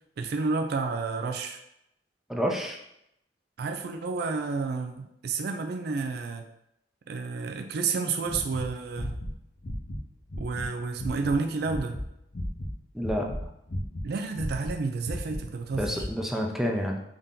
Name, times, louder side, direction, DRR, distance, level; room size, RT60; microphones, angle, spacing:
voice 1, 0.2-1.6 3.6-6.5 7.1-9.2 10.4-12.0 14.0-16.1, right 4 dB, 65° right, 5 dB, 0.4 m, -30 dB
voice 2, 2.3-2.8 12.9-13.3 15.8-17.0, equal, ahead, 0 dB, 0.5 m, -28 dB
sound 1, 8.2-10.7 11.0-11.4 11.6-12.7 13.0-14.1 14.3-16.1, left 1 dB, 55° left, 0.7 m, -35 dB
3.7 x 2.7 x 3.6 m, 0.79 s
head